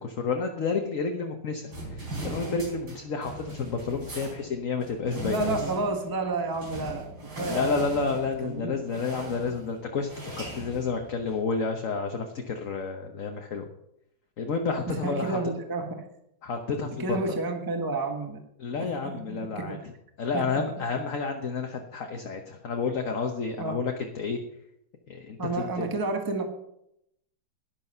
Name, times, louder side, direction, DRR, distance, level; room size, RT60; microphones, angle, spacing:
voice 1, 0.0-5.6 7.5-13.6 14.4-15.4 16.4-17.2 18.6-19.8 20.2-24.4 25.1-25.9, left 4 dB, 50° left, 3 dB, 1.2 m, -30 dB
sound 1, 1.7-11.5, right 1 dB, 75° right, 5.1 m, -39 dB
voice 2, 5.2-8.1 8.4-8.7 14.9-16.0 17.0-18.4 18.8-19.8 20.3-20.6 23.6-23.8 25.4-26.4, right 3 dB, 15° right, 4 dB, 1.1 m, -31 dB
12.0 x 10.5 x 5.6 m, 0.80 s
omnidirectional pair, 2.1 m